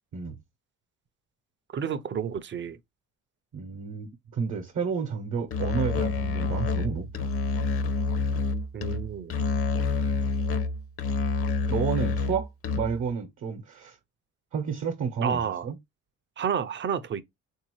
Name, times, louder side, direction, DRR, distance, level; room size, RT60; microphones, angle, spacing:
voice 1, 1.7-2.8 8.7-9.3 15.2-15.7 16.4-17.2, right 7 dB, 40° right, 0.5 m, -30 dB
voice 2, 3.5-7.3 11.7-12.5 12.8-14.0 14.5-15.8, right 6 dB, 60° right, 0.9 m, -31 dB
Musical instrument, 5.5-13.1, left 4 dB, 50° left, 0.6 m, -28 dB
3.7 x 2.6 x 3.0 m
cardioid pair, 90°, 30 cm